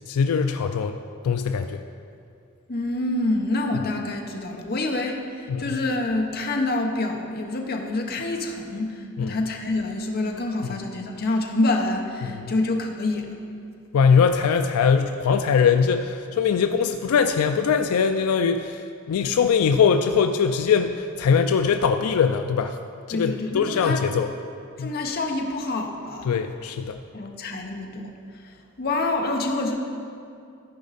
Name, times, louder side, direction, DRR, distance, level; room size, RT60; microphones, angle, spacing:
voice 1, 0.1-1.0 1.2-1.8 3.7-3.8 5.5-5.8 9.2-9.4 10.7-10.8 12.2-12.5 13.9-22.8 23.1-24.3 24.8-24.9 26.3-27.0, left 6 dB, 85° left, 7 dB, 0.4 m, -21 dB
voice 2, 2.7-5.2 5.6-13.3 19.1-19.4 23.1-24.0 24.8-26.3 27.1-28.1 28.8-29.8, left 2 dB, 45° left, 2 dB, 0.8 m, -27 dB
14.0 x 5.2 x 4.0 m, 2.4 s
head